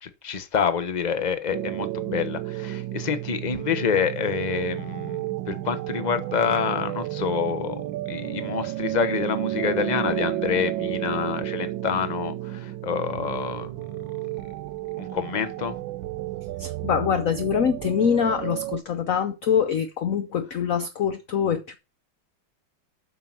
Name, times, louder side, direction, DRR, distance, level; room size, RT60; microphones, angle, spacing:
voice 1, 0.0-14.1 15.0-15.8, left 7 dB, 35° left, 0.7 m, -27 dB
sound 1, 1.5-18.8, right 15 dB, 75° right, 1.3 m, -32 dB
voice 2, 16.6-21.8, left 7 dB, 70° left, 0.8 m, -24 dB
7.4 x 6.9 x 6.0 m
omnidirectional pair, 2.3 m